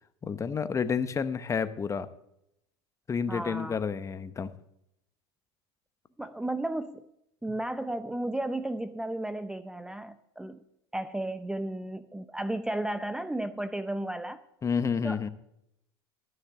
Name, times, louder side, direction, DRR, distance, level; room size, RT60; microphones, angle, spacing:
voice 1, 0.2-2.1 3.1-4.5 14.6-15.3, left 6 dB, 25° left, 12 dB, 0.8 m, -30 dB
voice 2, 3.3-3.8 6.2-7.1 7.4-10.6 10.9-14.4 15.0-15.3, right 1 dB, 5° right, 12 dB, 0.5 m, -34 dB
13.0 x 6.5 x 7.3 m, 0.79 s
hypercardioid pair, 100°, 13 cm